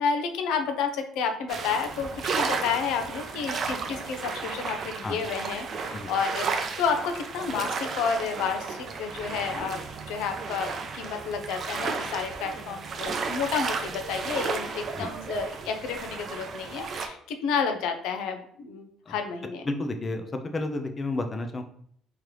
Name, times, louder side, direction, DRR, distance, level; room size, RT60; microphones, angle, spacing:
voice 1, 0.0-2.1 2.4-6.5 6.8-9.8 10.1-19.6, left 6 dB, 90° left, 6 dB, 0.6 m, -30 dB
sound 1, 1.5-17.1, right 5 dB, 45° right, 0.5 m, -33 dB
voice 2, 19.6-21.6, left 2 dB, 25° left, 6 dB, 0.4 m, -31 dB
3.8 x 3.1 x 3.1 m, 0.63 s
cardioid pair, 135°, 0 cm